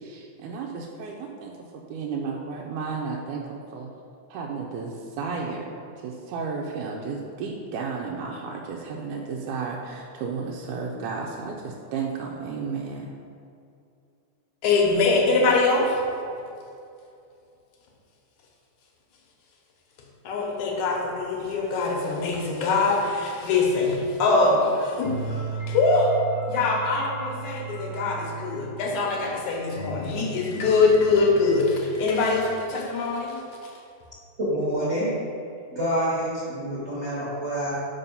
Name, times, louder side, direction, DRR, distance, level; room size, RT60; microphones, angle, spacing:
voice 1, 0.0-1.5 1.9-3.9 4.3-5.8 6.0-13.1, right 5 dB, 85° right, -2 dB, 2.0 m, -33 dB
voice 2, 14.6-16.0 20.2-26.2 26.5-33.7, left 3 dB, 75° left, -1 dB, 2.3 m, -23 dB
sound 1, 25.0-29.4 29.7-32.4, right 4 dB, 50° right, 1.7 m, -36 dB
voice 3, 34.4-35.1 35.7-37.7, equal, 35° right, -9 dB, 1.2 m, -27 dB
5.5 x 5.1 x 5.3 m, 2.5 s
omnidirectional pair, 3.5 m